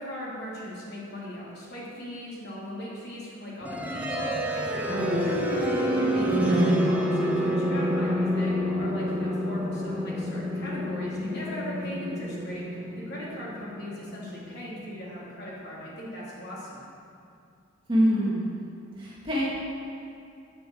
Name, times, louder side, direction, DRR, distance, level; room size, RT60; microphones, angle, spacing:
voice 1, 0.0-16.8, left 1 dB, 50° left, -7 dB, 3.5 m, -38 dB
sound 1, 3.6-15.5, equal, 5° right, 0.9 m, -28 dB
voice 2, 4.9-5.2 17.9-18.4 19.0-19.5, equal, 25° right, -8 dB, 2.6 m, -25 dB
9.4 x 9.2 x 7.9 m, 2.5 s
head